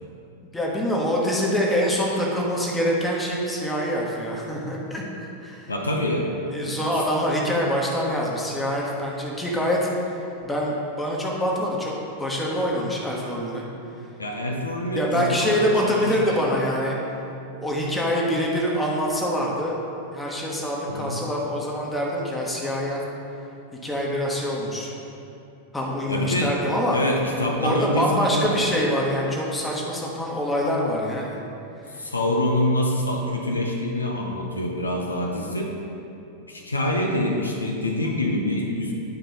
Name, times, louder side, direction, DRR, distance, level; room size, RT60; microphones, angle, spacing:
voice 1, 0.5-5.7 6.5-9.9 10.4-11.9 12.2-13.7 14.9-17.0 17.6-19.8 20.1-23.0 23.8-24.9 25.7-27.0 27.6-31.4, equal, 10° left, -3 dB, 1.2 m, -25 dB
voice 2, 5.7-6.3 6.6-6.8 14.2-16.4 20.9-21.2 26.1-26.6 26.9-28.7 31.9-35.7 36.5-38.9, left 1 dB, 80° left, 0 dB, 0.7 m, -25 dB
9.8 x 4.4 x 4.0 m, 2.8 s
figure-of-eight pair, 90°, 0 cm